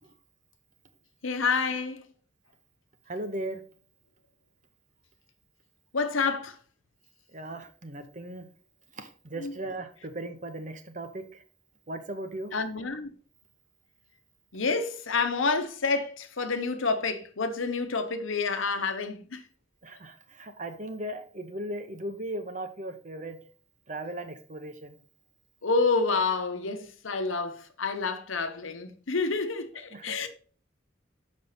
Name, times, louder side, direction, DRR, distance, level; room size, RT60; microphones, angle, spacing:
voice 1, 1.2-2.0 5.9-6.6 9.4-9.6 12.5-13.1 14.5-19.4 25.6-30.3, left 4 dB, 85° left, 1.0 m, -28 dB
voice 2, 3.1-3.6 7.3-8.4 9.0-11.4 11.9-12.5 19.8-23.4 23.9-25.0 29.9-30.3, right 1 dB, 40° right, 0.8 m, -37 dB
6.6 x 5.3 x 4.2 m
head